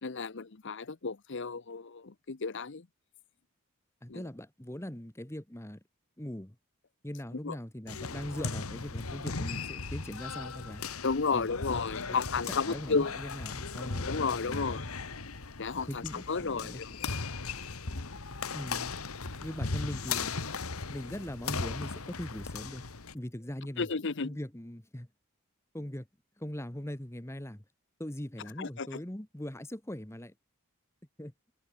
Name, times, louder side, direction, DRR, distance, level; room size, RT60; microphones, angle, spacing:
voice 1, 0.0-2.8 4.1-4.2 7.4-7.6 11.0-13.1 14.0-14.9 15.6-16.9 17.9-18.1 23.8-24.3 28.6-29.0, left 4 dB, 55° left, 0.8 m, -33 dB
voice 2, 4.0-5.8 6.2-6.5 7.0-10.8 11.3-11.5 11.9-12.2 12.5-14.9 15.9-17.2 18.5-18.9 19.4-20.3 20.9-22.8 23.1-23.9 24.2-25.1 25.7-26.1 26.4-27.6 28.0-30.3 31.2-31.3, equal, 10° left, 1.3 m, -41 dB
sound 1, 7.9-23.1, left 4 dB, 75° left, 1.7 m, -37 dB
head